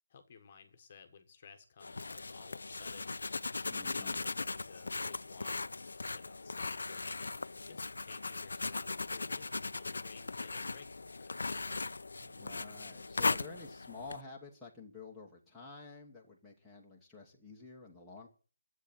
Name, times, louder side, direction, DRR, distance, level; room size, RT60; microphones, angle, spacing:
voice 1, 0.1-3.2 3.9-7.3 7.6-11.5, left 6 dB, 25° left, 8 dB, 1.3 m, -56 dB
sound 1, 1.8-14.2, left 3 dB, 90° left, 0.6 m, -38 dB
voice 2, 3.7-4.2 12.3-18.3, left 4 dB, ahead, -7 dB, 1.2 m, -50 dB
11.0 x 8.2 x 9.0 m, 0.38 s
hypercardioid pair, 180°, 0 cm